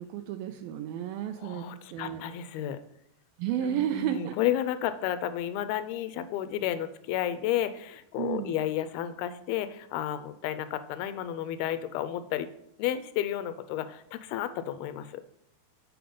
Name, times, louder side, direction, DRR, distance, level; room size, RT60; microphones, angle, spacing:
voice 1, 0.0-2.2 3.4-4.3 8.2-8.6, right 10 dB, 80° right, 7 dB, 2.1 m, -32 dB
voice 2, 1.4-2.8 3.6-12.5 12.8-15.2, left 11 dB, 85° left, 12 dB, 2.4 m, -32 dB
7.7 x 4.7 x 5.1 m, 0.73 s
omnidirectional pair, 4.4 m